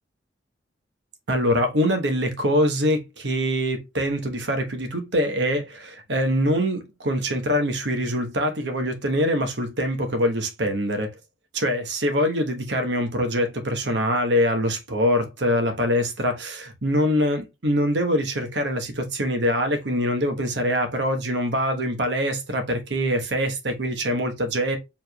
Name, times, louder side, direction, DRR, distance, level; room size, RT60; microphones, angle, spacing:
voice 1, 1.3-11.1 11.5-24.8, equal, 70° right, 1.1 m, -24 dB
4.8 x 3.5 x 2.2 m
head